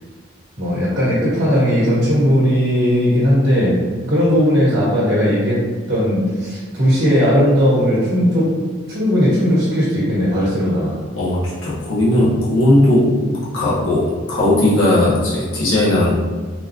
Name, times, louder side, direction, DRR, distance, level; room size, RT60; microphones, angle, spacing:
voice 1, 0.6-3.7 4.1-5.6 5.9-8.5 8.9-11.0, equal, 55° right, -8 dB, 1.4 m, -17 dB
voice 2, 11.2-16.1, left 1 dB, 75° left, -8 dB, 0.9 m, -17 dB
4.0 x 2.3 x 2.8 m, 1.5 s
head